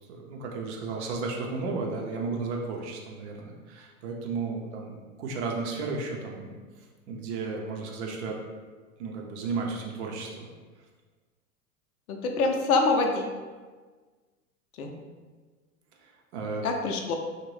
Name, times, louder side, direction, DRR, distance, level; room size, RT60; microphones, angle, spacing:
voice 1, 0.1-8.4 9.0-10.5 16.0-16.7, right 4 dB, 50° right, 0 dB, 0.6 m, -34 dB
voice 2, 12.1-13.3 14.8-14.9 16.6-17.2, left 3 dB, 75° left, 3 dB, 0.6 m, -25 dB
2.6 x 2.1 x 3.1 m, 1.4 s
hypercardioid pair, 100°, 44 cm